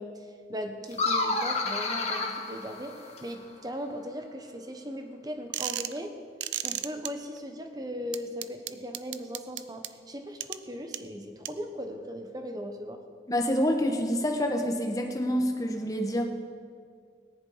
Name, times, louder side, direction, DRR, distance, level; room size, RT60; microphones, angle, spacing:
voice 1, 0.0-6.1 6.6-13.0, equal, 20° right, 5 dB, 1.2 m, -38 dB
sound 1, 0.9-3.4, left 3 dB, 35° left, 1.5 m, -30 dB
sound 2, 5.5-6.0 6.4-7.1 8.1-9.9 10.4-10.6 10.9-11.0 11.4-11.5, right 12 dB, 80° right, 0.6 m, -32 dB
voice 2, 13.3-16.3, equal, 20° left, 3 dB, 1.3 m, -27 dB
18.5 x 10.5 x 5.1 m, 2.1 s
head